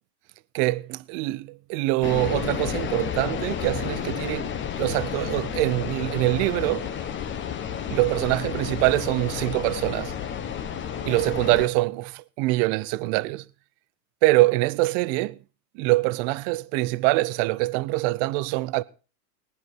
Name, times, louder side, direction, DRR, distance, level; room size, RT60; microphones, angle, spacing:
voice 1, 0.5-4.5 4.8-6.9 7.9-10.1 11.0-13.4 14.2-15.4 15.7-18.8, right 20 dB, 45° right, 0.7 m, -24 dB
sound 1, 2.0-11.7, left 8 dB, 25° left, 1.2 m, -31 dB
19.0 x 10.0 x 4.5 m
supercardioid pair, 125°, 49 cm